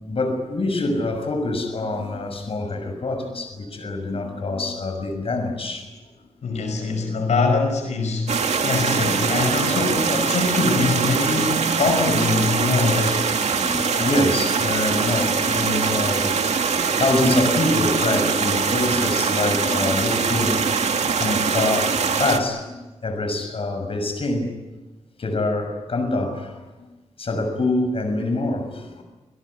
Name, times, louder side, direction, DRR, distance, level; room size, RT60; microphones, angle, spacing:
voice 1, 0.1-5.9 6.5-6.6 13.6-16.3 17.0-20.6 21.0-21.9 22.2-22.7 23.0-24.5 25.2-26.6 27.2-29.0, left 2 dB, 55° left, 6 dB, 6.3 m, -25 dB
voice 2, 6.4-13.3, left 3 dB, 85° left, 5 dB, 5.5 m, -23 dB
sound 1, 8.3-22.4, right 5 dB, 75° right, 2.4 m, -22 dB
28.5 x 18.0 x 9.7 m, 1.1 s
cardioid pair, 80°, 12 cm